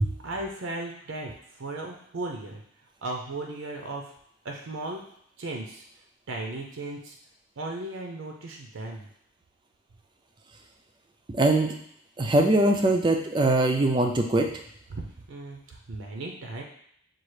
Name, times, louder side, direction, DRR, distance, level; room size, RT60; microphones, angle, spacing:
voice 1, 0.2-2.6 3.0-4.1 4.4-5.1 5.4-5.8 6.3-7.2 7.6-9.1 14.9-16.6, right 2 dB, 70° right, 1 dB, 0.6 m, -36 dB
voice 2, 11.3-11.7 12.2-14.5, right 2 dB, 20° right, 3 dB, 0.4 m, -22 dB
6.0 x 2.4 x 3.2 m, 0.69 s
head